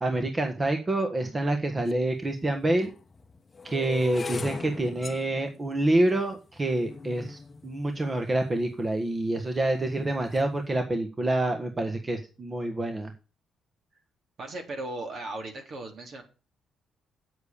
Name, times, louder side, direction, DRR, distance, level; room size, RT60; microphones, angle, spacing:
voice 1, 0.0-2.9 3.6-13.1, right 1 dB, 25° right, 5 dB, 1.5 m, -27 dB
sound 1, 1.9-2.0 2.7-8.9 9.5-9.9 10.2-10.6, left 4 dB, 30° left, 0.9 m, -40 dB
voice 2, 14.4-16.2, right 2 dB, 55° right, 4 dB, 3.5 m, -37 dB
8.6 x 8.0 x 6.9 m, 0.34 s
cardioid pair, 90°, 0 cm